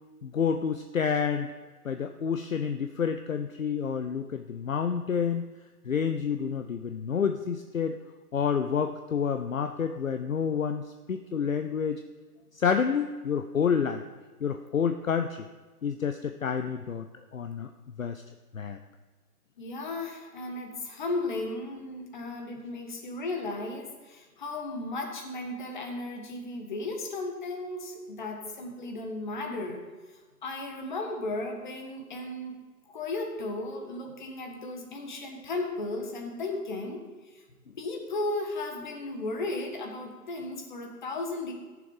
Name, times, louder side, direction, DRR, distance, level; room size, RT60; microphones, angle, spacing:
voice 1, 0.2-1.5 1.8-5.5 5.8-8.0 8.3-12.0 12.5-14.0 14.4-15.5 15.8-17.1 17.3-17.7 18.0-18.2 18.5-18.8, left 7 dB, 55° left, 7 dB, 0.7 m, -29 dB
voice 2, 19.6-29.8 30.4-32.6 32.9-37.0 37.3-37.4 37.8-41.5, left 2 dB, 30° left, 2 dB, 1.5 m, -35 dB
13.5 x 6.9 x 4.9 m, 1.3 s
figure-of-eight pair, 145°, 47 cm